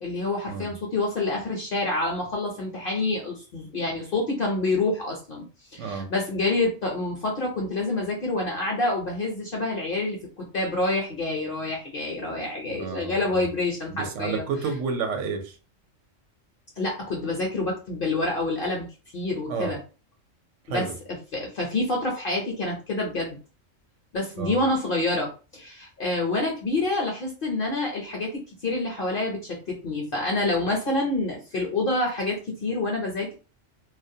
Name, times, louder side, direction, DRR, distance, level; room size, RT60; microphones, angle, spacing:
voice 1, 0.0-5.5 5.7-14.4 16.8-18.9 19.1-19.8 20.7-20.9 21.3-23.4 24.1-28.3 28.6-33.3, left 2 dB, 55° left, -1 dB, 0.6 m, -27 dB
voice 2, 5.8-6.1 12.7-13.5 13.9-15.6 19.5-19.8 20.6-20.9 24.4-24.6, right 5 dB, 75° right, 5 dB, 0.9 m, -31 dB
2.4 x 2.1 x 2.6 m, 0.34 s
omnidirectional pair, 1.3 m